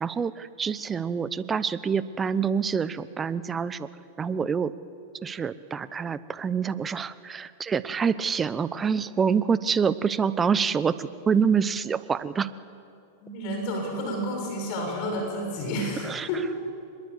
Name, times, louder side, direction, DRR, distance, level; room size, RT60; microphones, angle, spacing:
voice 1, 0.0-3.9 4.2-4.7 5.2-12.5 16.0-16.3, right 6 dB, 20° right, 16 dB, 0.9 m, -26 dB
voice 2, 13.2-16.5, equal, 50° left, 2 dB, 6.4 m, -30 dB
24.5 x 21.5 x 8.3 m, 2.6 s
hypercardioid pair, 105°, 0 cm